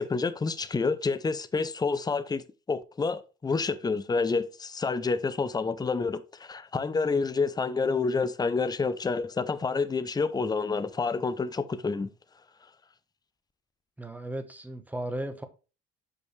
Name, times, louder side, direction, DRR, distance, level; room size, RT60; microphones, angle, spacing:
voice 1, 0.0-2.4 2.7-12.1, left 4 dB, 15° left, 0.6 m, -28 dB
voice 2, 14.0-15.4, right 1 dB, 5° right, 1.1 m, -35 dB
6.1 x 5.7 x 3.2 m
hypercardioid pair, 70°, 30 cm